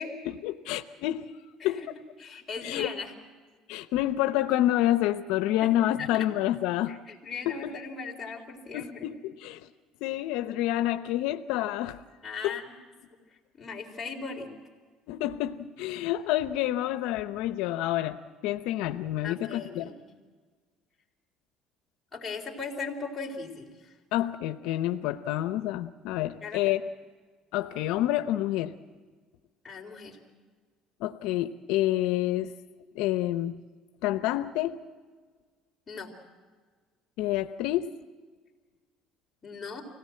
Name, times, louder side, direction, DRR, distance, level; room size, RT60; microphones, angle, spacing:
voice 1, 0.3-1.8 2.6-2.9 3.7-6.9 7.5-7.7 8.7-9.7 10.0-12.0 12.4-12.6 15.1-18.2 18.4-19.9 24.1-26.8 27.5-28.7 31.0-32.5 32.9-33.6 34.0-34.8 37.2-37.9, left 14 dB, 85° left, 10 dB, 0.7 m, -28 dB
voice 2, 2.2-3.1 5.6-5.7 6.0-6.3 6.9-9.1 12.2-12.8 13.5-14.5 19.2-20.0 22.1-23.9 26.4-26.6 29.6-30.2 35.9-36.1 39.4-39.8, left 4 dB, 15° left, -1 dB, 3.8 m, -38 dB
25.0 x 17.0 x 7.6 m, 1.5 s
cardioid pair, 130°, 0 cm